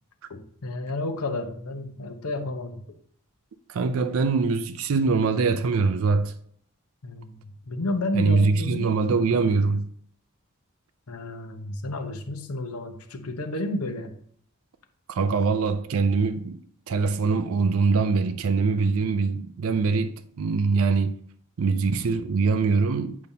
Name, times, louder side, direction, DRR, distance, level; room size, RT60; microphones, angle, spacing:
voice 1, 0.3-2.8 7.0-9.2 11.1-14.1, left 2 dB, 80° left, 0.9 m, -31 dB
voice 2, 3.7-6.3 8.1-9.9 15.1-16.6 16.9-20.1 20.4-21.2 21.6-23.2, right 4 dB, 65° right, 0.4 m, -23 dB
8.5 x 5.3 x 2.8 m
head